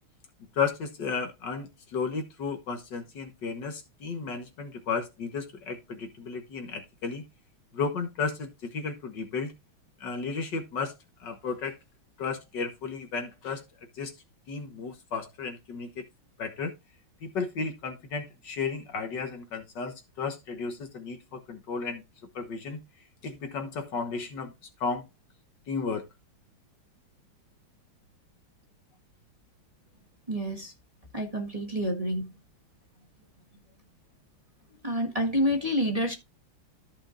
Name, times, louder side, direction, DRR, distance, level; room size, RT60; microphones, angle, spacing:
voice 1, 0.6-7.2 7.7-9.5 10.0-10.9 11.2-11.8 12.2-13.6 14.0-14.1 14.5-16.1 16.4-16.7 17.2-22.0 22.4-22.8 23.2-24.5 24.8-25.1 25.7-26.0, left 5 dB, 60° left, 1.9 m, -33 dB
voice 2, 30.3-30.7 31.1-32.3 34.8-36.1, equal, 20° right, 1.4 m, -28 dB
14.0 x 5.5 x 2.6 m
omnidirectional pair, 2.2 m